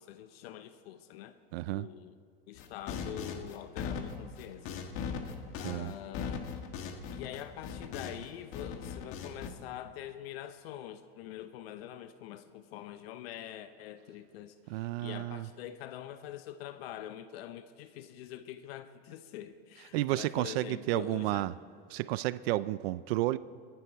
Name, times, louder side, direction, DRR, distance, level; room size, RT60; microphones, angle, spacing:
voice 1, 0.0-1.4 1.7-2.1 2.5-5.2 5.6-6.5 7.1-21.5, left 11 dB, 70° left, 11 dB, 0.8 m, -45 dB
voice 2, 1.5-1.9 5.6-5.9 14.7-15.5 19.9-21.5 21.9-23.4, right 16 dB, 70° right, 17 dB, 0.5 m, -31 dB
sound 1, 2.6-8.3 8.5-9.5, left 6 dB, 45° left, 1.4 m, -39 dB
22.5 x 10.5 x 4.6 m, 2.1 s
supercardioid pair, 135°, 31 cm